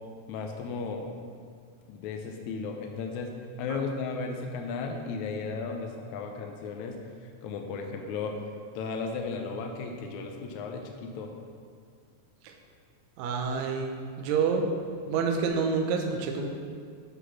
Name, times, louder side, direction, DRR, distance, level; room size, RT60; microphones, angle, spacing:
voice 1, 0.3-1.1 1.9-3.3 3.6-8.4 8.8-11.3, left 4 dB, 80° left, 3 dB, 1.8 m, -35 dB
voice 2, 13.2-14.7 15.0-16.5, right 5 dB, 75° right, 2 dB, 1.7 m, -28 dB
8.0 x 4.1 x 5.9 m, 2.1 s
omnidirectional pair, 3.8 m